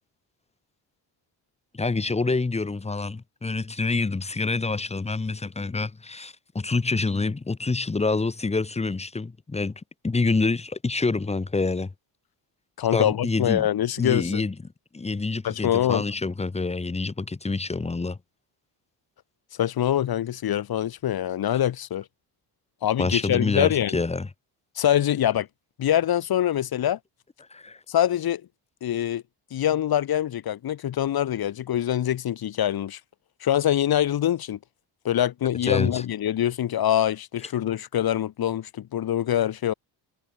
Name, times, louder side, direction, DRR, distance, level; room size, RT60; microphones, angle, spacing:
voice 1, 1.7-9.7 10.0-11.9 12.9-13.7 14.0-14.5 14.9-18.2 23.0-24.3 27.5-27.8 35.6-36.0, left 3 dB, 15° left, 1.4 m, -27 dB
voice 2, 12.8-14.4 15.4-16.0 19.6-22.0 22.8-24.0 24.8-25.5 25.8-27.0 27.9-28.4 28.8-29.2 29.5-33.0 33.4-34.6 35.0-39.7, left 11 dB, 55° left, 2.2 m, -24 dB
cardioid pair, 140°, 43 cm